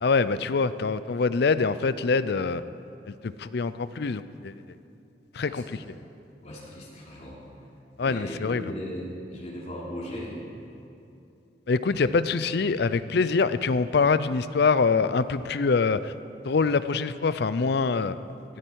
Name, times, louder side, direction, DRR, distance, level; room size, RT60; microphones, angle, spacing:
voice 1, 0.0-2.6 3.1-4.5 5.3-5.8 8.0-8.7 11.7-16.1 16.4-18.2, left 4 dB, 65° left, 14 dB, 0.5 m, -24 dB
voice 2, 6.4-7.4 8.0-10.4 11.9-12.2, equal, 40° left, -5 dB, 3.5 m, -38 dB
18.0 x 13.0 x 4.7 m, 2.7 s
head